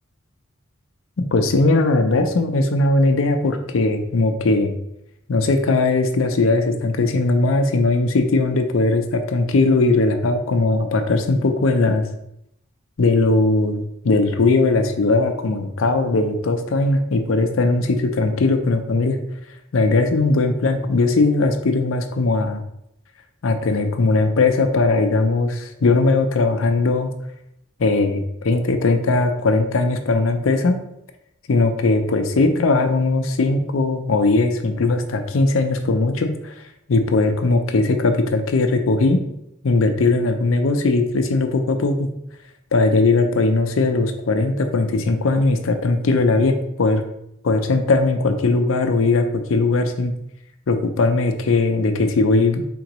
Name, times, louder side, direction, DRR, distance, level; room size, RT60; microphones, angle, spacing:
voice 1, 1.2-4.7 5.3-12.1 13.0-19.2 19.7-22.6 23.4-27.1 27.8-30.8 31.5-36.5 36.9-39.2 39.6-42.1 42.7-47.0 47.4-50.1 50.7-52.7, left 3 dB, 85° left, 7 dB, 0.5 m, -19 dB
4.3 x 3.8 x 3.0 m, 0.81 s
head